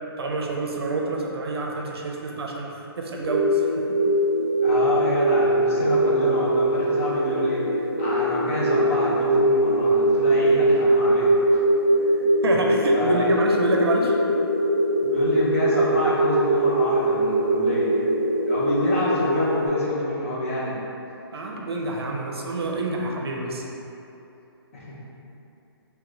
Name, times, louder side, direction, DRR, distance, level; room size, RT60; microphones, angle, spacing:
voice 1, 0.2-3.8 12.4-14.1 21.3-23.6, right 2 dB, 75° right, 0 dB, 0.5 m, -27 dB
sound 1, 3.2-19.7, right 1 dB, 25° right, 0.7 m, -22 dB
voice 2, 4.6-11.6 12.9-13.4 15.0-18.0 18.4-20.8 21.3-21.4 24.7-25.0, left 1 dB, 35° left, -7 dB, 0.6 m, -27 dB
3.1 x 2.4 x 3.1 m, 2.9 s
hypercardioid pair, 165°, 13 cm